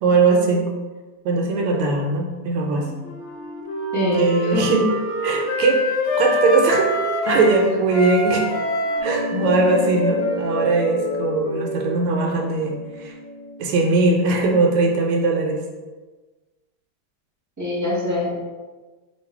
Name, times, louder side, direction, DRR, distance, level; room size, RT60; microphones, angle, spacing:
voice 1, 0.0-0.6 1.2-2.9 4.2-4.9 5.2-5.8 6.2-6.9 7.3-8.4 9.0-13.1 13.6-15.6, right 3 dB, 85° right, 1 dB, 1.5 m, -20 dB
Wind instrument woodwind instrument, 2.7-10.2, right 1 dB, 60° right, 1.1 m, -35 dB
Wind instrument woodwind instrument 2, 3.1-7.6 7.9-12.4, left 1 dB, 80° left, 1.4 m, -26 dB
voice 2, 3.9-4.6 9.3-9.5 17.6-18.3, left 1 dB, 10° right, -8 dB, 0.8 m, -24 dB
sound 1, 9.0-13.8, left 1 dB, 35° left, 1.4 m, -29 dB
3.7 x 2.3 x 4.5 m, 1.3 s
omnidirectional pair, 2.4 m